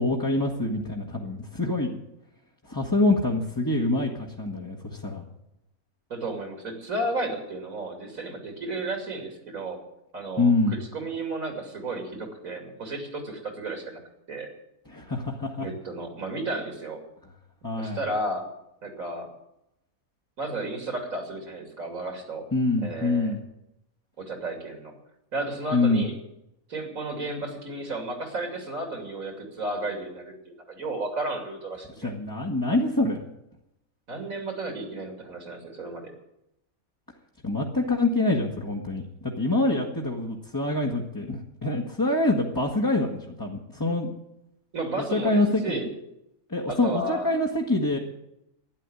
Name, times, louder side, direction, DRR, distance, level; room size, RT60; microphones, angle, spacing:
voice 1, 0.0-2.0 2.6-5.2 10.4-10.8 14.9-15.7 17.6-18.0 22.5-23.4 25.7-26.0 32.0-33.3 37.4-44.1 45.0-45.8 46.5-48.0, left 2 dB, 15° left, -2 dB, 1.4 m, -25 dB
voice 2, 6.1-9.8 10.1-14.0 14.3-14.5 15.6-17.0 17.7-18.4 18.8-19.3 20.4-22.4 22.8-23.3 24.2-24.9 25.3-26.1 26.7-32.1 34.1-36.1 44.7-45.9 46.7-47.3, right 2 dB, 70° right, 3 dB, 3.2 m, -33 dB
12.0 x 10.0 x 9.8 m, 0.84 s
omnidirectional pair, 1.5 m